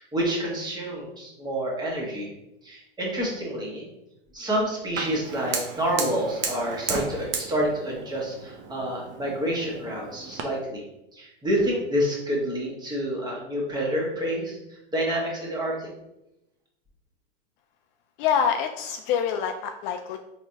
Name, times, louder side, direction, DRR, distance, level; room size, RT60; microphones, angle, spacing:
voice 1, 0.0-2.3 2.6-3.9 4.3-10.8 11.1-15.9, equal, 15° right, -3 dB, 1.4 m, -28 dB
Fire, 5.0-10.4, right 5 dB, 40° right, 0.7 m, -34 dB
voice 2, 18.2-20.2, left 7 dB, 50° left, 6 dB, 0.4 m, -26 dB
4.2 x 3.3 x 2.7 m, 0.90 s
hypercardioid pair, 110°, 32 cm